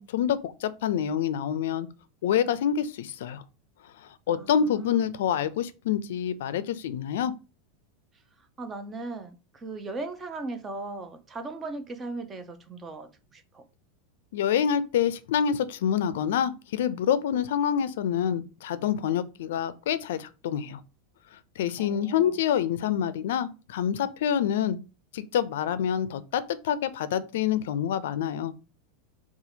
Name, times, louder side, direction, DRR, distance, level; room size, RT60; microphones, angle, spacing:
voice 1, 0.0-1.9 2.2-3.4 4.3-7.3 14.3-20.8 21.6-24.8 25.1-28.5, left 9 dB, 80° left, 0.4 m, -27 dB
voice 2, 4.3-5.0 8.4-13.6 21.8-22.4, right 3 dB, 15° right, 0.4 m, -38 dB
2.8 x 2.3 x 4.1 m
supercardioid pair, 160°, 0 cm